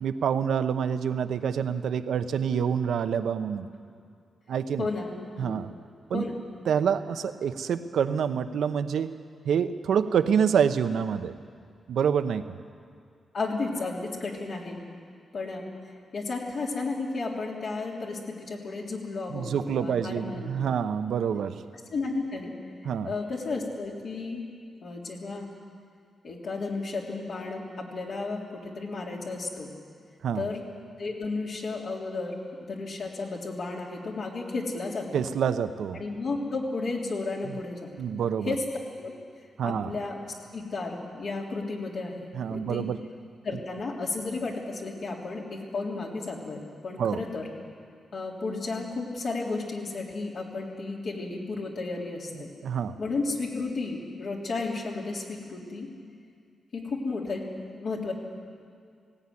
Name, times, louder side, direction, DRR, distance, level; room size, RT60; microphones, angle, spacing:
voice 1, 0.0-3.7 4.5-4.9 5.4-5.7 6.1-6.2 6.7-9.1 9.4-11.3 11.9-12.5 19.3-21.6 22.8-23.1 30.2-30.5 35.1-36.0 37.4-37.6 38.0-38.5 39.6-39.9 42.3-43.0 47.0-47.2 52.3-52.9, right 7 dB, 80° right, 10 dB, 0.9 m, -27 dB
voice 2, 4.8-5.1 5.4-5.6 6.1-6.4 13.3-14.8 15.3-15.6 16.1-20.7 21.9-22.5 23.0-24.4 24.8-25.5 26.2-29.7 30.4-30.6 31.0-32.4 32.7-35.2 35.9-37.9 38.5-38.6 39.0-39.1 39.6-40.2 40.5-42.9 43.4-47.5 48.1-52.5 53.0-55.9 56.7-57.4 57.8-58.1, left 3 dB, 60° left, -2 dB, 3.7 m, -33 dB
18.5 x 16.0 x 9.8 m, 2.3 s
cardioid pair, 110°, 0 cm